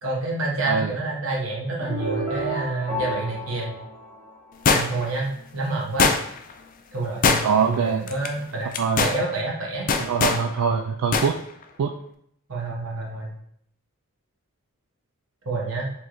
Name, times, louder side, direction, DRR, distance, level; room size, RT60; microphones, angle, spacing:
voice 1, 0.0-3.7 4.7-6.1 6.9-8.7 9.0-9.9 12.5-13.3 15.4-15.9, right 2 dB, 65° right, -2 dB, 1.1 m, -28 dB
sound 1, 1.8-4.8, equal, 15° right, 1.1 m, -32 dB
sound 2, 4.7-5.2 6.0-6.5 7.2-7.7 8.1-8.3 8.7-9.2 9.9-10.4 11.1-11.3 11.6-11.7, left 5 dB, 40° left, 0.3 m, -21 dB
voice 2, 7.4-8.1 8.8-9.0 10.0-11.4 11.8-11.9, right 6 dB, 85° right, 4 dB, 0.3 m, -23 dB
4.4 x 3.1 x 3.0 m, 0.69 s
head